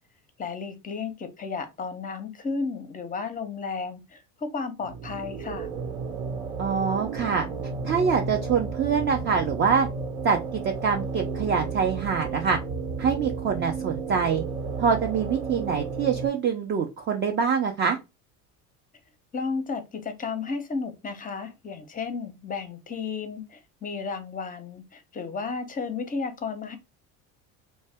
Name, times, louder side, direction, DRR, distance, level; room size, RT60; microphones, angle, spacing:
voice 1, 0.4-5.7 19.3-26.8, left 4 dB, 20° left, 0.6 m, -33 dB
sound 1, 4.8-16.3, right 4 dB, 85° right, 1.1 m, -33 dB
voice 2, 6.6-7.5 7.8-9.9 10.2-12.6 13.0-14.4 14.8-18.0, right 6 dB, 30° right, 0.4 m, -25 dB
2.6 x 2.1 x 3.3 m
supercardioid pair, 90°, 42 cm